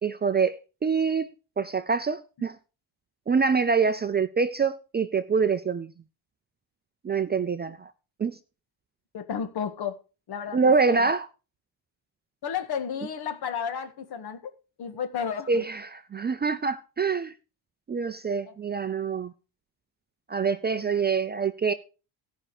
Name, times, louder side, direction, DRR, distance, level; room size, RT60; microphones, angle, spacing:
voice 1, 0.0-2.6 3.3-5.9 7.0-7.9 8.2-8.4 10.5-11.3 15.5-17.3 17.9-19.3 20.3-21.7, right 5 dB, 20° right, 0.5 m, -25 dB
voice 2, 9.1-10.0 10.3-11.1 12.4-14.5 14.8-15.6, left 7 dB, 55° left, 1.8 m, -32 dB
16.5 x 5.6 x 4.9 m
cardioid pair, 145°, 46 cm